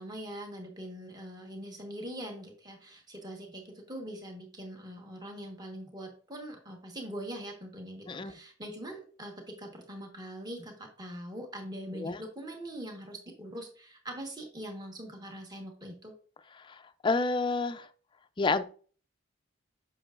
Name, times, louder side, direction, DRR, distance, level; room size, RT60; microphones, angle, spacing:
voice 1, 0.0-16.1, right 1 dB, 20° right, 2 dB, 1.3 m, -42 dB
voice 2, 16.6-17.9 18.4-18.6, left 3 dB, 25° left, 10 dB, 0.4 m, -30 dB
8.1 x 6.0 x 2.5 m, 0.42 s
head